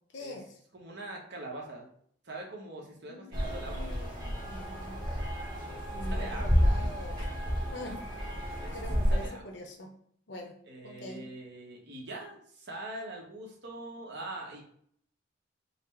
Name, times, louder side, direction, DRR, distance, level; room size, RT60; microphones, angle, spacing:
voice 1, 0.1-0.5 3.0-5.0 5.9-7.3 7.7-8.1 8.7-9.9 10.3-11.2, left 1 dB, 65° left, 3 dB, 0.8 m, -44 dB
voice 2, 0.7-1.9 2.2-3.9 6.1-6.6 8.6-8.8 9.1-9.6 10.7-14.6, right 2 dB, 60° right, 0 dB, 1.0 m, -43 dB
sound 1, 3.3-9.3, equal, 20° right, 1.0 m, -30 dB
4.1 x 2.0 x 4.4 m, 0.63 s
head